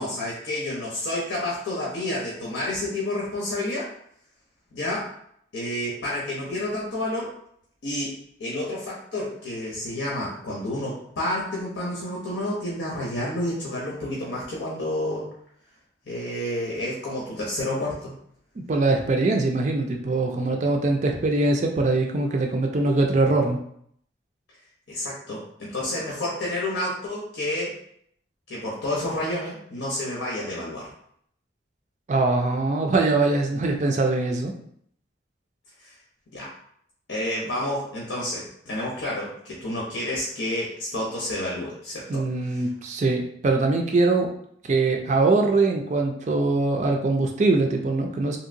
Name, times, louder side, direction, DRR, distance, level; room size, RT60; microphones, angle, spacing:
voice 1, 0.0-3.9 4.7-5.1 5.5-7.3 7.8-8.1 8.4-15.3 16.1-18.1 24.9-27.7 28.5-30.9 35.8-35.9 36.3-36.5 37.1-42.7, left 1 dB, 80° left, -5 dB, 0.8 m, -30 dB
voice 2, 18.6-23.6 32.1-34.5 42.1-44.3 44.7-48.4, right 3 dB, 40° right, 3 dB, 0.3 m, -22 dB
3.1 x 2.8 x 2.6 m, 0.68 s
head